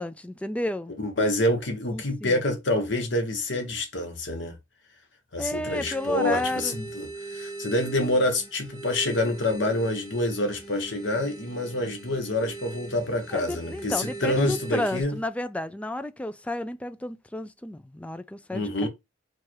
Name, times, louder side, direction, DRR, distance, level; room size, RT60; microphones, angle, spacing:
voice 1, 0.0-0.9 1.9-2.4 5.4-6.7 13.3-18.9, left 1 dB, 5° left, 0.3 m, -32 dB
voice 2, 1.0-4.6 5.3-15.2 18.5-18.9, left 1 dB, 70° left, 1.2 m, -27 dB
sound 1, 5.7-15.0, right 3 dB, 20° right, 1.5 m, -41 dB
4.6 x 2.5 x 4.6 m
head